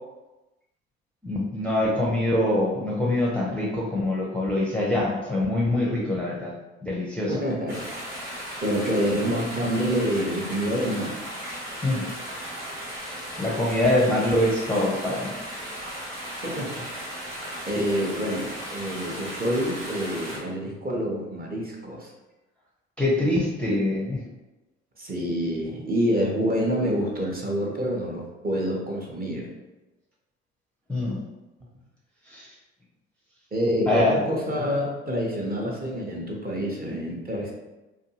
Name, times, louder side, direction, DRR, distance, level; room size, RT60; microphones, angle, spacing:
voice 1, 1.2-6.5 6.8-7.4 11.8-12.0 13.0-15.4 23.0-24.2 30.9-31.2 32.3-32.6 33.9-34.2, left 1 dB, 5° left, -5 dB, 0.6 m, -24 dB
voice 2, 7.3-7.9 8.6-11.3 16.4-17.2 17.7-22.1 25.0-29.5 33.5-37.5, equal, 25° right, -2 dB, 0.8 m, -27 dB
sound 1, 7.7-20.4, equal, 50° right, 1.2 m, -36 dB
2.5 x 2.3 x 2.8 m, 1.1 s
hypercardioid pair, 55°, 34 cm